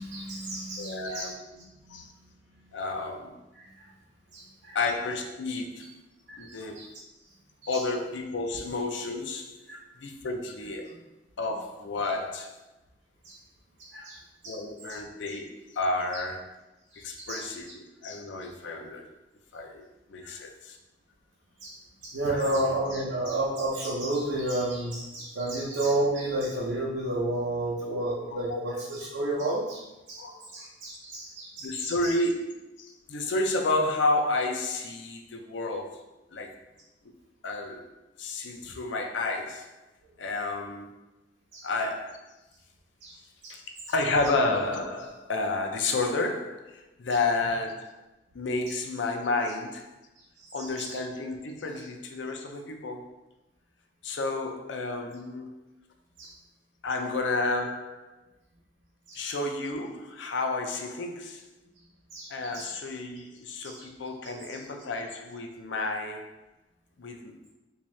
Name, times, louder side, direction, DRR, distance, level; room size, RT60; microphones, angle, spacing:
voice 1, 0.0-1.3 1.6-2.1 3.5-3.9 4.3-4.8 5.8-5.9 6.3-6.9 7.7-7.8 9.7-9.8 13.2-13.4 13.8-14.6 14.9-15.0 16.9-17.4 20.2-20.4 21.6-21.8 22.0-30.3 30.5-31.9 41.5-41.7 43.0-43.2 43.4-43.6 48.7-48.8 50.4-51.0 56.2-56.3 59.1-59.2 62.1-62.7 63.6-63.9 64.5-64.6, right 1 dB, 90° right, -6 dB, 0.7 m, -32 dB
voice 2, 0.8-1.4 1.9-2.1 2.7-3.3 4.7-5.9 6.4-6.8 7.7-9.7 10.0-10.9 11.4-12.6 14.5-16.6 16.9-19.1 19.5-20.8 22.3-22.7 28.3-28.6 30.2-30.5 31.6-36.0 36.3-36.5 37.4-37.9 38.2-39.7 40.2-40.9 41.6-42.3 43.5-43.6 43.9-48.0 48.3-49.9 50.5-53.1 54.0-55.7 56.8-58.1 59.1-61.5 62.3-66.3 67.0-67.5, left 2 dB, 80° left, 4 dB, 0.5 m, -31 dB
3.5 x 2.8 x 3.1 m, 0.99 s
head